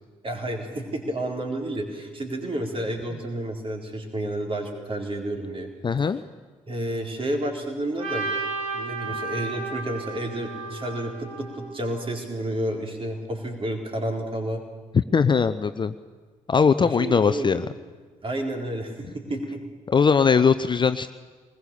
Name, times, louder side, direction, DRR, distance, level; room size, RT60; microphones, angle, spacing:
voice 1, 0.2-5.7 6.0-6.1 6.7-8.3 8.7-14.6 16.8-17.6 18.2-19.7, right 1 dB, 35° right, 2 dB, 4.1 m, -30 dB
voice 2, 5.8-6.2 15.1-15.9 16.5-17.6 19.9-21.1, left 6 dB, 30° left, 12 dB, 0.6 m, -20 dB
Trumpet, 8.0-12.1, right 3 dB, 85° right, 7.7 m, -33 dB
21.5 x 20.5 x 7.0 m, 1.4 s
figure-of-eight pair, 40°, 17 cm